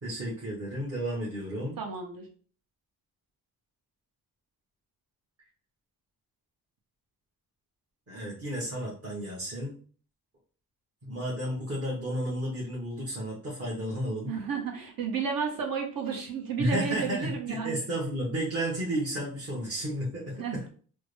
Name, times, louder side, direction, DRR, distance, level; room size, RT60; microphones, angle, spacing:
voice 1, 0.0-1.8 8.1-9.8 11.0-14.3 16.6-20.6, equal, 35° right, -5 dB, 1.2 m, -32 dB
voice 2, 1.8-2.3 14.3-17.8 20.4-20.7, right 6 dB, 60° right, 3 dB, 1.0 m, -32 dB
3.5 x 2.1 x 3.3 m, 0.43 s
cardioid pair, 75°, 39 cm